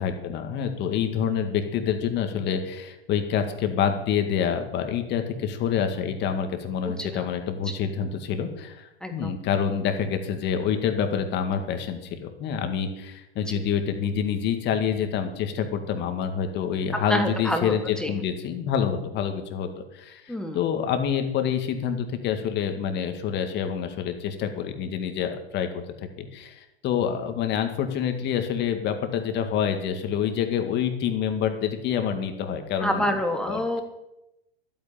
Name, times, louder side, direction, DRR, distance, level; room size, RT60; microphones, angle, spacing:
voice 1, 0.0-19.7 19.9-33.1 33.5-33.6, left 8 dB, 35° left, 7 dB, 2.1 m, -27 dB
voice 2, 6.8-7.3 9.0-9.3 13.5-13.6 17.1-18.2 20.3-20.6 32.8-33.8, left 1 dB, ahead, 4 dB, 1.4 m, -27 dB
12.0 x 9.2 x 8.7 m, 0.89 s
hypercardioid pair, 125°, 31 cm